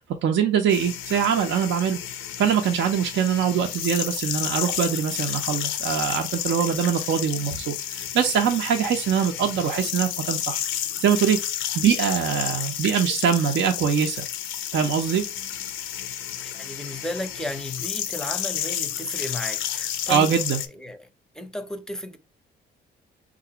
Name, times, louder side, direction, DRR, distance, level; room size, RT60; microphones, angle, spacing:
voice 1, 0.2-2.0 2.4-10.6 11.0-11.4 11.7-14.3 14.7-15.2 20.1-20.6, right 7 dB, 70° right, 0.6 m, -23 dB
sound 1, 0.7-20.7, left 10 dB, 80° left, 0.5 m, -31 dB
voice 2, 16.4-20.3 20.7-21.1 21.3-22.2, left 1 dB, 5° left, 0.5 m, -34 dB
3.9 x 2.5 x 2.8 m
cardioid pair, 90°, 20 cm